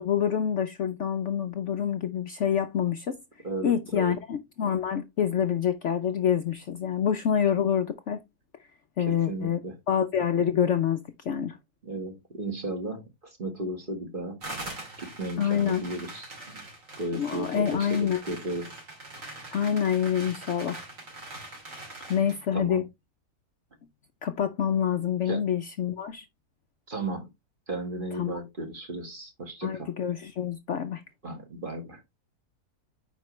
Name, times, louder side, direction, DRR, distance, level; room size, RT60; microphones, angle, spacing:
voice 1, 0.0-3.2 3.6-8.2 9.0-9.6 9.9-11.6 15.4-15.9 17.1-18.2 19.5-20.8 22.1-22.8 24.2-26.3 28.2-28.3 29.6-31.0, left 8 dB, 60° left, 0.8 m, -27 dB
voice 2, 3.4-4.1 9.1-9.8 11.8-14.4 15.0-16.6 17.0-18.7 19.4-19.6 22.0-22.2 22.5-22.8 25.3-25.4 26.9-27.3 27.7-29.9 31.2-32.0, right 2 dB, 35° right, 1.9 m, -35 dB
sound 1, 14.4-22.4, right 2 dB, 55° right, 3.3 m, -42 dB
9.3 x 4.5 x 3.1 m
omnidirectional pair, 1.7 m